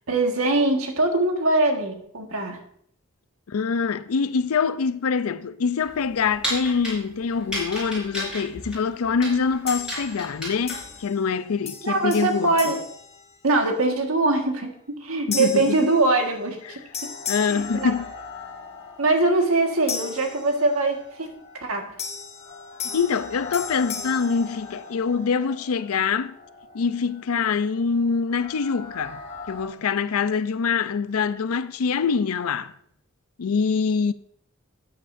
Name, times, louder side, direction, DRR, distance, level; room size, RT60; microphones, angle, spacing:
voice 1, 0.1-2.6 11.8-12.8 13.4-14.7 15.0-16.8 17.5-17.9 19.0-21.3 21.5-21.9, right 2 dB, 85° right, 1.6 m, -22 dB
voice 2, 3.5-12.8 15.3-15.8 17.3-18.1 22.8-26.4 26.7-29.2 29.5-32.7 33.4-34.1, left 5 dB, 90° left, 0.5 m, -24 dB
sound 1, 5.8-11.0, equal, 5° right, 4.7 m, -33 dB
sound 2, 9.7-10.3 10.7-11.4 11.7-13.8 14.3-14.6 15.3-16.6 16.9-18.6 19.9-21.0 22.0-25.2, left 6 dB, 30° left, 1.2 m, -36 dB
sound 3, 16.4-29.6, left 4 dB, 55° left, 2.1 m, -42 dB
13.5 x 8.7 x 2.6 m
head